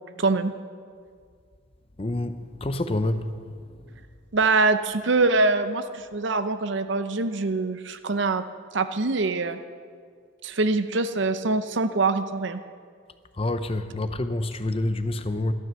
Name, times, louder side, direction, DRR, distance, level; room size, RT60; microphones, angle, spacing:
voice 1, 0.2-0.5 4.3-8.4 8.7-9.6 10.4-12.6, right 3 dB, 65° right, 0.7 m, -24 dB
voice 2, 2.0-3.3 13.4-15.5, left 1 dB, 30° left, 0.7 m, -27 dB
14.0 x 12.5 x 6.9 m
head